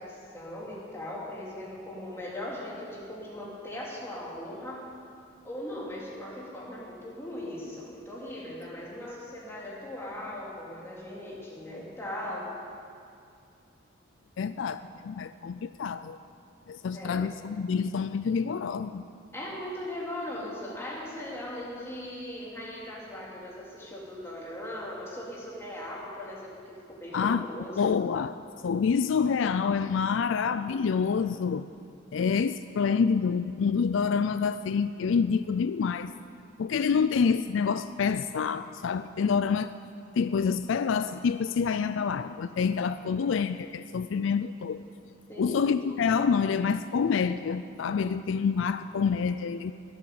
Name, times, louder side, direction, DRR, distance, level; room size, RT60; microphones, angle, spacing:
voice 1, 0.0-4.9 5.4-12.6 16.9-17.3 19.3-27.7 45.3-45.6, left 1 dB, 10° left, -5 dB, 3.1 m, -39 dB
voice 2, 14.4-16.2 16.7-19.0 27.1-27.4 27.8-31.6 32.1-36.1 36.6-39.7 40.2-44.8 45.4-49.7, left 6 dB, 70° left, 12 dB, 0.4 m, -27 dB
21.5 x 8.6 x 7.0 m, 2.4 s
head